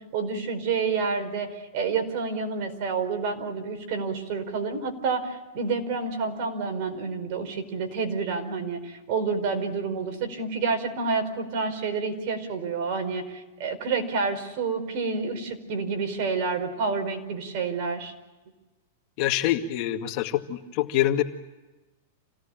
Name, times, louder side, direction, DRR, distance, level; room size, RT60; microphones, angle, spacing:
voice 1, 0.0-18.1, right 4 dB, 50° right, 6 dB, 4.9 m, -29 dB
voice 2, 19.2-21.2, left 13 dB, 45° left, 5 dB, 2.1 m, -25 dB
28.0 x 18.0 x 9.0 m, 1.1 s
supercardioid pair, 145°, 0 cm